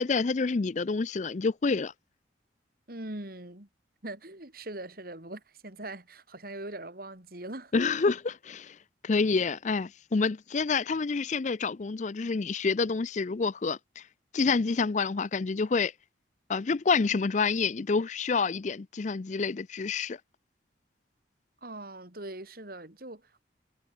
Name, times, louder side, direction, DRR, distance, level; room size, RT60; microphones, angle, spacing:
voice 1, 0.0-1.9 7.7-8.7 9.0-14.0 14.3-15.9 16.5-20.2, left 4 dB, 40° left, 0.5 m, -28 dB
voice 2, 2.9-3.7 4.0-7.7 21.6-23.4, right 1 dB, 50° right, 3.2 m, -41 dB
head